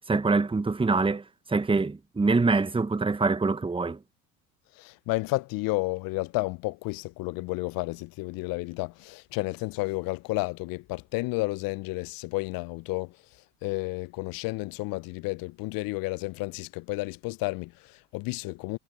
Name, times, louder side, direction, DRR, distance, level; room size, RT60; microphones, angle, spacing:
voice 1, 0.1-4.0, right 3 dB, 10° right, 1.6 m, -25 dB
voice 2, 4.8-13.1 13.6-18.8, left 23 dB, 50° left, 1.1 m, -31 dB
figure-of-eight pair, 70°, 44 cm